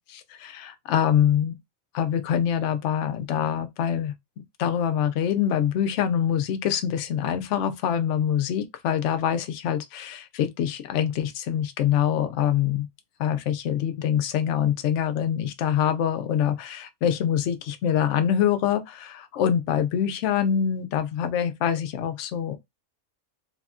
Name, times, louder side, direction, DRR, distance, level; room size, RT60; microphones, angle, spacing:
voice 1, 0.0-1.5 1.9-4.1 4.6-12.9 13.2-22.6, left 9 dB, 65° left, 0.8 m, -25 dB
3.4 x 2.2 x 2.4 m
omnidirectional pair, 1.5 m